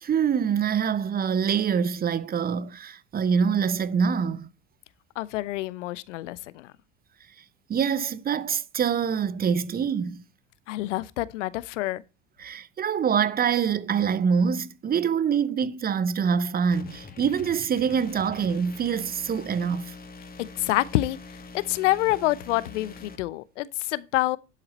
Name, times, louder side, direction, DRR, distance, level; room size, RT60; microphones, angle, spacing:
voice 1, 0.0-4.5 7.7-10.2 12.4-19.9, right 7 dB, 25° right, 0.8 m, -25 dB
voice 2, 5.2-6.7 10.7-12.0 20.4-21.2 21.5-24.4, left 17 dB, 70° left, 0.9 m, -27 dB
sound 1, 16.7-23.2, left 4 dB, 25° left, 2.2 m, -44 dB
12.0 x 7.8 x 4.2 m
hypercardioid pair, 85°, 37 cm